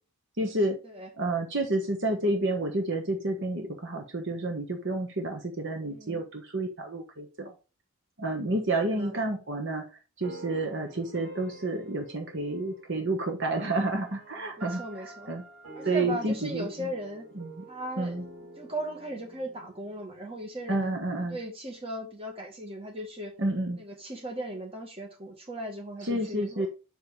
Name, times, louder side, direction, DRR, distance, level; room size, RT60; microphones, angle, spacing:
voice 1, 0.4-0.8 1.2-7.5 8.2-9.8 10.2-15.4 15.8-16.9 17.3-17.6 18.0-18.2 20.7-21.4 23.4-23.8 26.0-26.7, right 2 dB, 55° right, 1.4 m, -30 dB
voice 2, 5.9-6.2 8.8-9.2 14.6-15.3 15.8-17.3 17.7-18.2 18.6-23.3 23.8-26.7, right 1 dB, 25° right, 1.9 m, -38 dB
sound 1, 10.2-21.3, right 2 dB, 85° right, 3.8 m, -48 dB
6.6 x 5.3 x 4.0 m
head